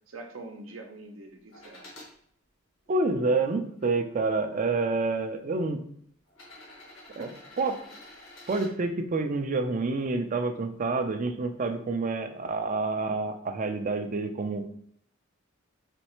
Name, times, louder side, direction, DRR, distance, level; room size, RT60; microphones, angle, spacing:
voice 1, 0.1-1.9 7.2-7.4, right 2 dB, 75° right, 3 dB, 0.7 m, -44 dB
sound 1, 1.5-2.1 2.8-3.9 4.9-5.0 6.3-8.7 10.6-10.7, left 2 dB, 85° left, 1.6 m, -49 dB
voice 2, 2.9-5.8 7.2-7.3 7.6-7.8 8.5-14.6, right 3 dB, 40° right, 7 dB, 0.4 m, -28 dB
4.3 x 3.1 x 3.0 m, 0.65 s
head